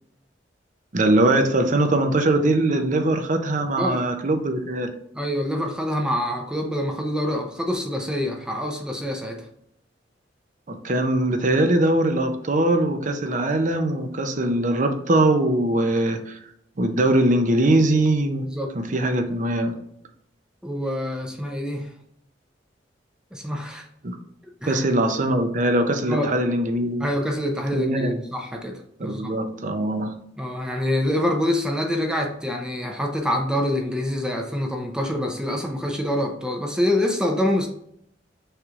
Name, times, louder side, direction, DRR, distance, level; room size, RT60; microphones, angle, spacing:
voice 1, 0.9-4.9 10.7-16.4 16.8-18.4 18.7-19.8 24.0-24.2 24.7-27.1 27.7-28.2 29.0-30.1, right 1 dB, 45° right, 6 dB, 0.7 m, -21 dB
voice 2, 5.1-9.5 18.5-18.7 20.6-21.9 23.3-23.9 24.6-24.8 26.1-26.3 27.0-29.3 30.4-37.7, left 1 dB, 5° right, 2 dB, 0.6 m, -26 dB
6.3 x 3.2 x 2.5 m, 0.74 s
head